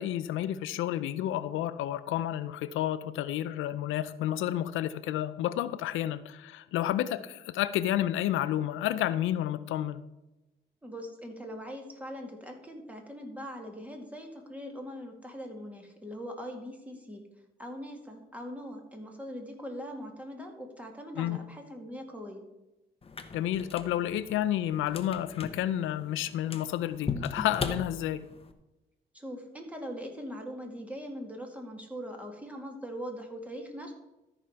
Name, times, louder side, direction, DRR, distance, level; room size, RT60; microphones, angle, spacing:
voice 1, 0.0-10.0 21.2-21.4 23.3-28.3, left 12 dB, 85° left, 13 dB, 0.5 m, -30 dB
voice 2, 10.8-17.3 17.6-22.4 29.1-33.9, equal, 5° right, 2 dB, 2.2 m, -41 dB
sound 1, 23.0-28.5, left 4 dB, 30° left, 1.0 m, -39 dB
13.5 x 5.0 x 5.7 m, 0.98 s
cardioid pair, 90°, 20 cm